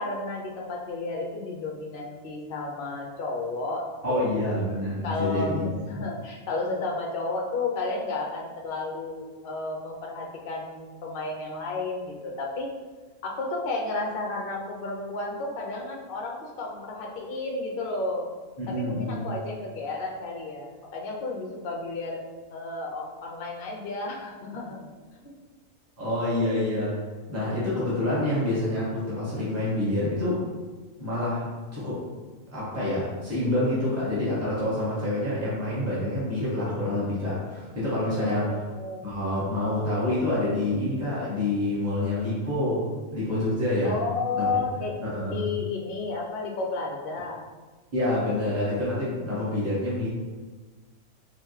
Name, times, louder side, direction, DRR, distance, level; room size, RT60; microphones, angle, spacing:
voice 1, 0.0-4.5 5.0-5.6 5.9-12.7 13.2-18.3 18.7-24.9 25.2-25.3 38.2-39.1 43.8-45.0 45.2-47.4, left 3 dB, 50° left, -1 dB, 0.7 m, -32 dB
voice 2, 4.0-6.0 18.6-19.3 26.0-27.0 27.3-30.4 31.0-32.0 32.5-38.7 39.0-44.0 44.3-44.5 45.0-45.4 47.9-50.1, left 1 dB, 10° right, -9 dB, 1.2 m, -27 dB
4.8 x 2.4 x 3.2 m, 1.3 s
omnidirectional pair, 1.5 m